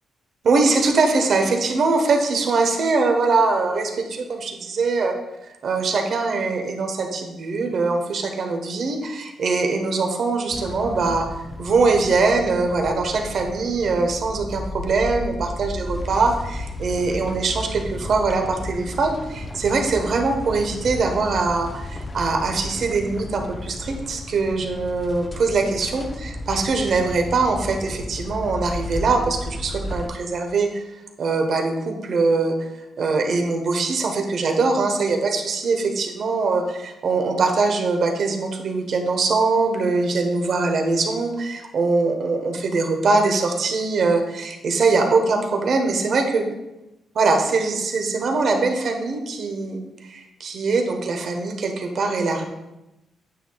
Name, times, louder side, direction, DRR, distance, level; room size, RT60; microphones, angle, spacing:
voice 1, 0.4-5.1 5.6-11.3 11.6-30.8 31.2-32.7 33.0-46.4 47.1-52.4, right 3 dB, 65° right, 3 dB, 1.1 m, -22 dB
sound 1, 10.5-30.1, left 1 dB, 25° left, 0.6 m, -33 dB
9.0 x 7.4 x 2.3 m, 0.96 s
cardioid pair, 80°, 0 cm